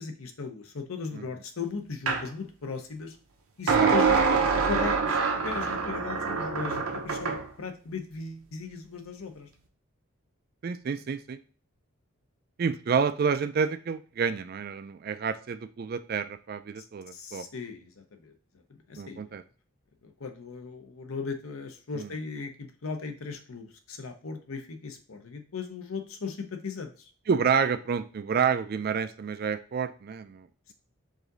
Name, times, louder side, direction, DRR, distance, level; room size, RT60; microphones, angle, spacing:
voice 1, 0.0-3.2 3.6-5.2 5.4-9.5 17.1-18.3 18.7-19.3 20.0-27.1, left 4 dB, 75° left, 6 dB, 0.7 m, -37 dB
sound 1, 2.1-2.3 3.7-7.4, right 5 dB, 80° right, 0.7 m, -25 dB
voice 2, 10.6-11.4 12.6-17.4 19.0-19.4 21.9-22.1 27.3-30.7, right 6 dB, 45° right, 12 dB, 0.3 m, -29 dB
4.9 x 2.6 x 3.9 m, 0.40 s
head